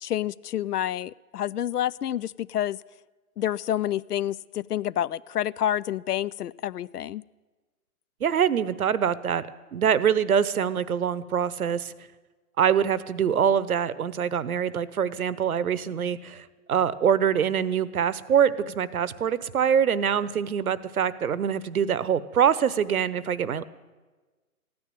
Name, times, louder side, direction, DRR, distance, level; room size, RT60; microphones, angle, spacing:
voice 1, 0.0-2.8 3.4-7.2, left 11 dB, 85° left, 22 dB, 0.5 m, -28 dB
voice 2, 8.2-9.4 9.7-11.9 12.6-23.6, right 8 dB, 70° right, 17 dB, 0.9 m, -24 dB
15.0 x 9.6 x 9.1 m, 1.3 s
hypercardioid pair, 145°, 45 cm